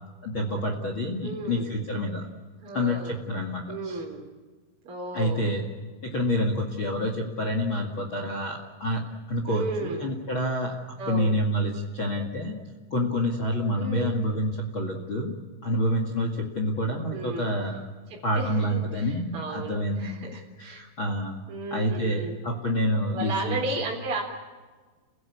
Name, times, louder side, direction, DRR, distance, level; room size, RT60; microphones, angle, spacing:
voice 1, 0.2-2.3 2.7-4.0 5.1-5.6 6.0-9.0 9.3-10.7 11.1-12.5 12.9-15.3 15.6-17.8 18.2-21.3 21.7-23.6, equal, 65° left, 2 dB, 1.2 m, -28 dB
voice 2, 1.2-1.8 2.6-3.2 3.7-4.2 4.8-5.5 9.5-10.1 11.0-11.3 13.8-14.1 17.1-17.5 18.1-20.8 21.5-22.4 23.1-24.2, right 2 dB, 30° right, -2 dB, 4.0 m, -34 dB
29.5 x 16.5 x 8.6 m, 1.4 s
omnidirectional pair, 5.9 m